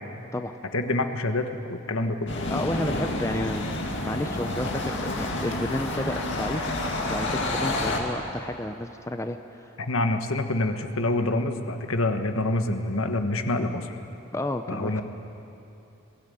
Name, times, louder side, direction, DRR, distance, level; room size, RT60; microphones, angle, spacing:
voice 1, 0.7-2.3 9.8-13.9 14.7-15.0, left 2 dB, 70° left, 6 dB, 1.4 m, -26 dB
sound 1, 2.3-8.0, left 1 dB, 55° left, 2.5 m, -29 dB
voice 2, 2.5-3.6 4.0-6.7 7.0-9.7 14.3-15.0, left 1 dB, 15° left, 7 dB, 0.6 m, -31 dB
21.5 x 16.5 x 9.2 m, 2.9 s
head